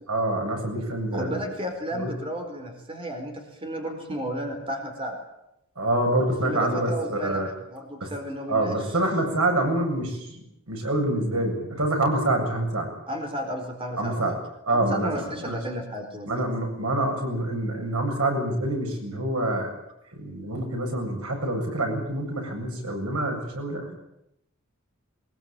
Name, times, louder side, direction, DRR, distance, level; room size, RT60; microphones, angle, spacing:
voice 1, 0.1-1.4 1.9-2.1 5.8-7.5 8.0-8.1 8.5-12.9 14.0-14.4 14.6-15.6 16.2-19.7 20.1-23.9, right 1 dB, 85° right, 2 dB, 7.7 m, -26 dB
voice 2, 1.1-5.1 6.4-8.8 9.0-9.2 13.1-14.3 14.7-16.3 23.9-24.0, equal, 25° right, 4 dB, 4.4 m, -33 dB
23.0 x 21.5 x 9.0 m, 0.83 s
head